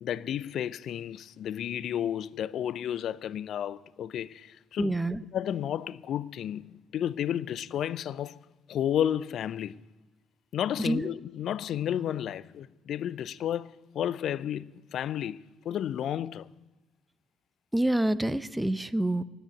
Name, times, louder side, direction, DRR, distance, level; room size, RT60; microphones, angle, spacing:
voice 1, 0.0-5.0 5.3-9.8 10.5-16.5, left 10 dB, 55° left, 0.4 m, -32 dB
voice 2, 4.8-5.2 10.8-11.1 17.7-19.2, right 1 dB, 5° right, 0.7 m, -27 dB
14.5 x 10.0 x 9.0 m
figure-of-eight pair, 50°, 0 cm